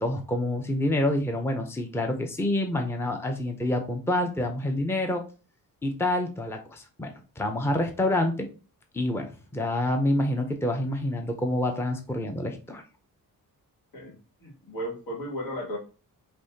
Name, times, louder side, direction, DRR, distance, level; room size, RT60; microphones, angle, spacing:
voice 1, 0.0-5.2 5.8-7.1 7.4-8.5 8.9-12.8, left 1 dB, 5° left, 4 dB, 0.6 m, -27 dB
voice 2, 13.9-15.8, equal, 80° left, -2 dB, 2.3 m, -35 dB
5.3 x 3.1 x 2.7 m, 0.34 s
wide cardioid pair, 140°, 35 cm